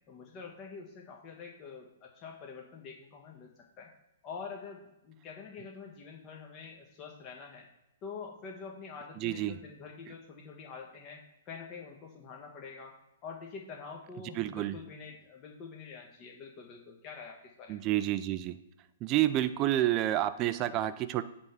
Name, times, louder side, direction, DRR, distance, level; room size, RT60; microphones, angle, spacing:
voice 1, 0.1-3.5 3.8-3.9 4.2-7.6 8.0-12.9 13.2-17.8, left 5 dB, 30° left, 0 dB, 1.3 m, -46 dB
voice 2, 9.2-9.6 14.4-14.8 17.7-18.6 19.0-21.2, right 13 dB, 35° right, 12 dB, 0.4 m, -29 dB
8.9 x 3.6 x 5.6 m, 0.89 s
hypercardioid pair, 125°, 0 cm